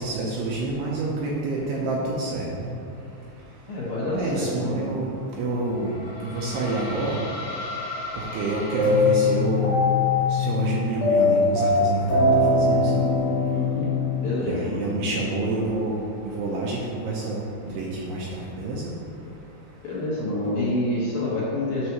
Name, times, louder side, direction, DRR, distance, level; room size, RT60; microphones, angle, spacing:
voice 1, 0.0-2.7 4.1-5.1 5.4-5.9 6.3-7.2 8.3-9.8 10.3-13.0 14.4-16.0 16.4-17.4 17.7-18.3 18.5-18.8, right 2 dB, 80° right, -4 dB, 2.6 m, -28 dB
voice 2, 3.7-4.9 13.5-13.9 14.2-14.9 19.8-21.9, left 1 dB, 60° left, -8 dB, 2.6 m, -27 dB
sound 1, 5.5-9.8, left 2 dB, 80° left, 1.6 m, -36 dB
sound 2, 8.8-15.0, left 3 dB, 45° left, 2.3 m, -21 dB
9.7 x 6.7 x 3.1 m, 2.6 s
omnidirectional pair, 5.5 m